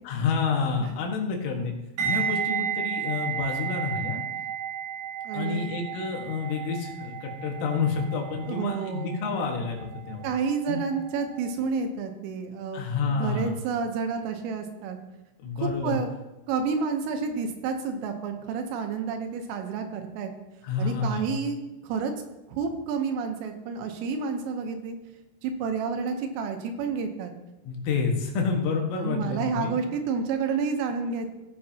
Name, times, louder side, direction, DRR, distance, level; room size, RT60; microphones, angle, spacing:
voice 1, 0.1-1.7 2.0-4.2 5.3-10.3 10.7-10.8 12.7-13.6 15.4-16.0 20.6-21.5 27.7-29.8, left 5 dB, 85° left, 1 dB, 4.2 m, -29 dB
sound 1, 2.0-10.9 11.2-11.5, right 8 dB, 65° right, 4.0 m, -33 dB
voice 2, 5.3-5.8 8.5-9.2 10.2-12.8 13.1-15.0 15.6-16.1 16.5-20.3 20.8-21.6 21.8-22.1 22.5-25.0 25.4-27.3 29.0-31.3, right 5 dB, 85° right, 5 dB, 3.7 m, -30 dB
16.5 x 7.7 x 2.9 m, 0.99 s
omnidirectional pair, 5.7 m